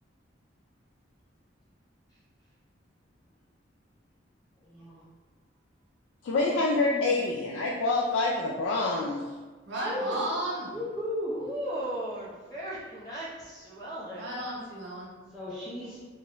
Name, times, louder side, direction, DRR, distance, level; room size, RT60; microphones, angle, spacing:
voice 1, 4.6-5.0 6.8-7.2 9.8-10.2 10.6-11.5 15.3-16.0, left 1 dB, ahead, -11 dB, 0.5 m, -35 dB
voice 2, 6.2-9.2, left 3 dB, 85° left, -4 dB, 0.3 m, -26 dB
voice 3, 9.7-10.8 14.1-15.1, right 1 dB, 70° right, -4 dB, 0.7 m, -33 dB
voice 4, 11.3-14.3, right 1 dB, 20° left, -9 dB, 0.8 m, -37 dB
2.8 x 2.2 x 2.9 m, 1.3 s
head